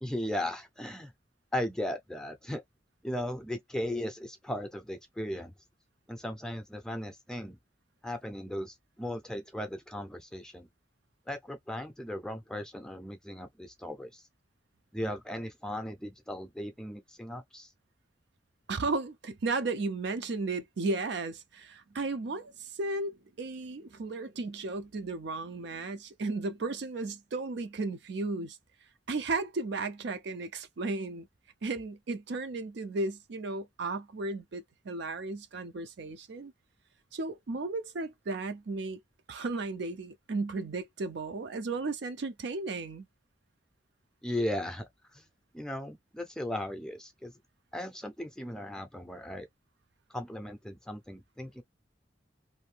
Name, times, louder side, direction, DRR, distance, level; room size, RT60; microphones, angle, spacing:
voice 1, 0.0-1.1 1.5-2.6 3.0-5.5 6.1-7.6 8.0-10.7 11.3-14.2 14.9-17.7 44.2-44.8 45.1-45.2 45.5-47.3 47.7-49.5 50.1-51.6, left 1 dB, 5° left, 0.6 m, -37 dB
voice 2, 18.7-28.6 29.1-31.3 31.6-36.5 37.1-39.0 39.3-43.1, right 3 dB, 60° right, 0.5 m, -34 dB
2.7 x 2.6 x 3.2 m
head